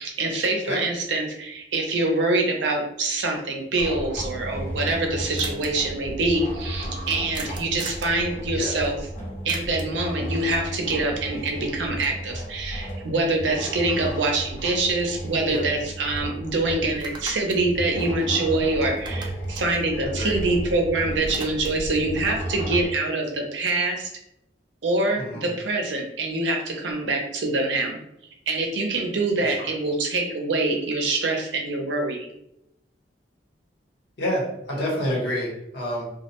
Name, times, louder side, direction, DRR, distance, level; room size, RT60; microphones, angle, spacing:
voice 1, 0.0-9.0 9.4-24.1 24.8-28.0 28.5-32.3, right 2 dB, 85° right, 2 dB, 0.5 m, -25 dB
sound 1, 3.8-22.9, right 1 dB, 45° left, 0.8 m, -34 dB
sound 2, 5.4-5.7 7.3-8.2 9.5-10.0 14.2-14.3 14.7-15.9 16.2-16.3 16.9-18.6 18.9-20.8 21.0-21.9, right 3 dB, 25° right, 0.3 m, -40 dB
voice 2, 20.0-20.4 25.2-25.5 29.4-29.7 34.2-36.0, equal, 65° left, -4 dB, 1.1 m, -28 dB
2.2 x 2.1 x 2.8 m, 0.80 s
head